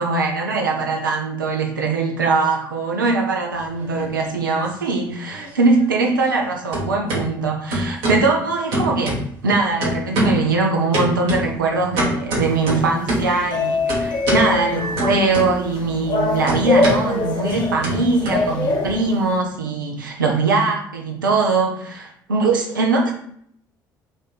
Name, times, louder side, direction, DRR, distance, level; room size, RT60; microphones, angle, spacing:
voice 1, 0.0-23.1, right 3 dB, 85° right, 1 dB, 0.6 m, -21 dB
sound 1, 3.6-4.5 4.8-6.4 6.7-7.2 7.7-8.3 8.7-9.5 9.8-10.5 10.9-13.4 13.9-14.5 15.0-15.8 16.0-18.9, equal, 65° right, 1.2 m, -25 dB
sound 2, 12.4-19.4, left 3 dB, 45° left, 1.0 m, -24 dB
3.4 x 2.6 x 4.0 m, 0.67 s
figure-of-eight pair, 50°, 10 cm